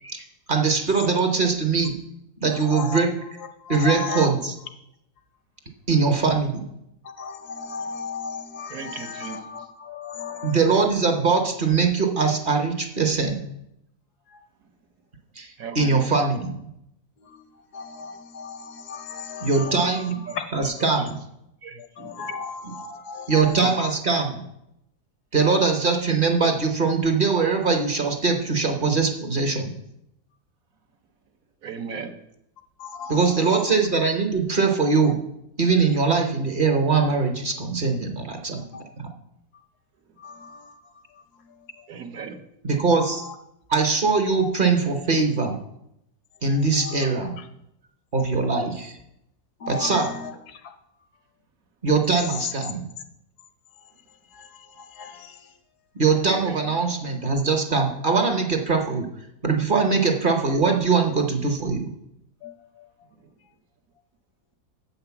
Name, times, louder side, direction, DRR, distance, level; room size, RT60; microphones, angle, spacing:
voice 1, 0.0-2.0 2.4-3.1 3.7-4.5 5.9-6.7 10.4-13.4 15.4-16.6 19.4-21.2 22.6-22.7 23.3-24.4 25.3-29.7 33.1-35.2 35.6-38.6 39.0-39.1 42.6-43.2 43.7-45.6 46.4-47.4 48.1-49.0 49.7-50.1 51.8-52.8 55.9-59.1 59.4-61.9, right 4 dB, 40° right, 4 dB, 1.0 m, -22 dB
voice 2, 3.7-4.3 7.2-10.6 17.7-19.8 22.0-23.4 32.8-33.1 40.2-40.6 46.8-46.9 49.6-50.0 55.0-55.1 62.4-62.5, left 5 dB, 90° left, 8 dB, 1.5 m, -34 dB
voice 3, 8.7-9.4 15.6-16.0 20.3-20.7 21.6-22.4 23.6-23.7 31.6-32.1 41.9-42.4 56.5-56.6, right 6 dB, 65° right, 7 dB, 1.2 m, -37 dB
7.7 x 5.8 x 6.9 m, 0.79 s
omnidirectional pair, 1.6 m